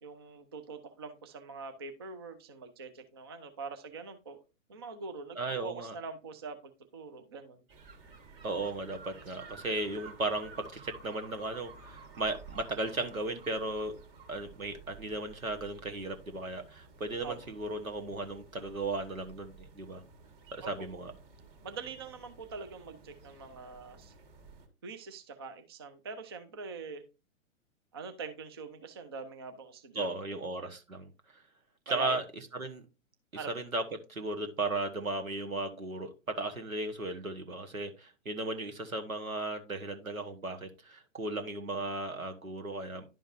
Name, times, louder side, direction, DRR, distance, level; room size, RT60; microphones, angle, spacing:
voice 1, 0.0-4.4 4.7-7.6 17.2-17.4 20.6-20.9 21.6-24.1 24.8-27.0 27.9-30.4 31.9-32.2 33.3-33.5, right 4 dB, 20° right, 8 dB, 0.3 m, -44 dB
voice 2, 5.3-6.0 8.4-13.9 14.3-20.0 20.5-21.1 29.9-31.1 31.9-32.2 32.5-32.8 33.5-33.8 34.1-43.0, right 2 dB, 90° right, 7 dB, 1.4 m, -36 dB
sound 1, 7.7-24.7, right 4 dB, 45° right, 1.7 m, -53 dB
11.0 x 5.1 x 2.5 m, 0.30 s
figure-of-eight pair, 120°, 40 cm